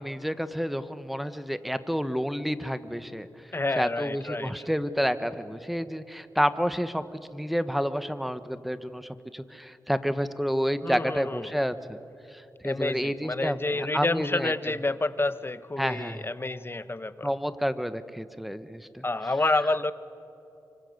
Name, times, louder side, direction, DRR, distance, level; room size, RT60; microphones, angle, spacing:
voice 1, 0.0-3.3 3.7-7.0 7.3-12.0 12.3-14.5 15.8-16.3 17.2-19.0, equal, ahead, 11 dB, 1.5 m, -29 dB
voice 2, 3.5-4.5 10.8-11.5 12.6-17.3 19.0-19.9, left 2 dB, 30° left, 13 dB, 1.2 m, -29 dB
25.5 x 25.5 x 8.1 m, 2.8 s
cardioid pair, 45°, 8 cm